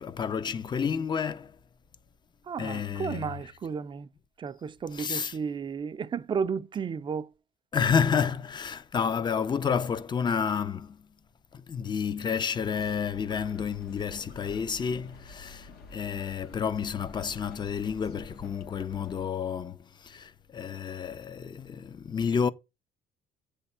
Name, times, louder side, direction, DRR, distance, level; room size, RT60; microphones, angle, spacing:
voice 1, 0.0-1.5 2.6-3.3 4.9-5.4 7.7-11.0 11.5-22.5, left 6 dB, 25° left, 0.5 m, -30 dB
voice 2, 2.5-4.1 4.4-7.3, right 6 dB, 30° right, 0.4 m, -33 dB
sound 1, 12.6-19.2, left 3 dB, 70° left, 1.2 m, -49 dB
8.1 x 3.4 x 5.5 m
cardioid pair, 110°, 17 cm